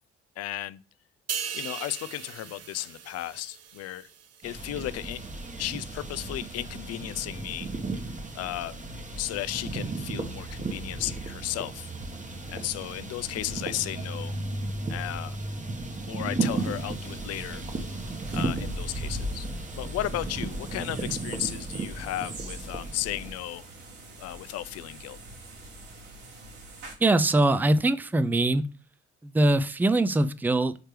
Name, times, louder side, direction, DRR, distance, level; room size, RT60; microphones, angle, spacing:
voice 1, 0.4-0.8 1.5-4.1 4.4-5.2 5.6-7.7 8.3-8.8 9.2-11.9 12.5-14.4 14.9-15.4 16.1-17.6 18.3-19.5 19.8-23.7 24.2-25.2, left 14 dB, 50° left, 0.5 m, -34 dB
sound 1, 1.3-4.8 5.2-5.4, right 8 dB, 50° right, 0.9 m, -38 dB
sound 2, 4.4-23.3, right 2 dB, 20° right, 1.2 m, -34 dB
sound 3, 16.4-26.9, right 3 dB, 65° right, 2.6 m, -46 dB
voice 2, 27.0-28.7 29.2-30.8, right 2 dB, 5° right, 0.4 m, -22 dB
6.7 x 4.3 x 3.3 m
figure-of-eight pair, 45°, 33 cm